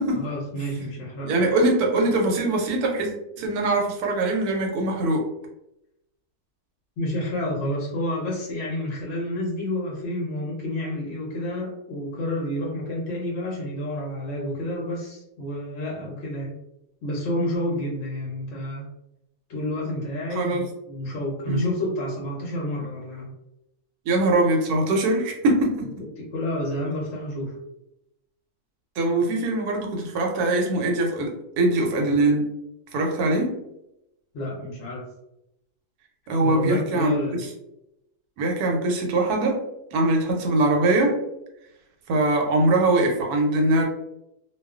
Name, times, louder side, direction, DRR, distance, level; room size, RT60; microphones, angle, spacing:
voice 1, 0.1-1.3 7.0-16.6 17.0-18.9 19.5-23.3 26.2-27.6 34.3-35.1 36.4-37.5, left 1 dB, 60° left, -3 dB, 0.7 m, -29 dB
voice 2, 1.2-5.3 20.4-20.6 21.5-21.7 24.1-25.9 29.0-32.5 32.9-33.6 36.3-37.2 38.4-39.6 39.9-41.2 42.1-43.9, right 2 dB, 80° right, 1 dB, 1.1 m, -22 dB
2.3 x 2.3 x 2.3 m, 0.84 s
omnidirectional pair, 1.6 m